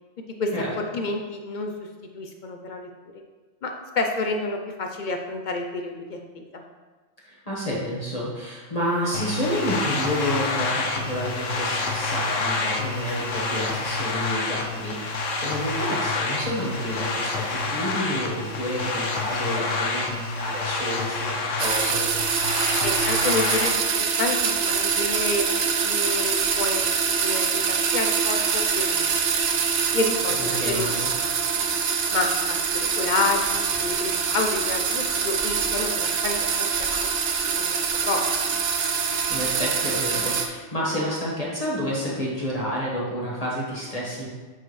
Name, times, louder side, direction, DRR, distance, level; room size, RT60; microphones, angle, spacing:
voice 1, 0.8-1.7 2.1-2.9 3.6-6.6 22.8-29.2 29.9-30.9 31.2-31.7 32.1-37.1 37.5-38.5, left 3 dB, 55° left, 3 dB, 0.6 m, -29 dB
voice 2, 7.2-22.1 30.4-31.1 39.3-44.3, equal, 35° left, -6 dB, 1.2 m, -29 dB
sound 1, 9.1-23.7, left 3 dB, 90° left, 1.1 m, -28 dB
sound 2, 21.6-40.5, right 6 dB, 60° right, 0.8 m, -24 dB
7.7 x 4.5 x 3.1 m, 1.3 s
omnidirectional pair, 1.2 m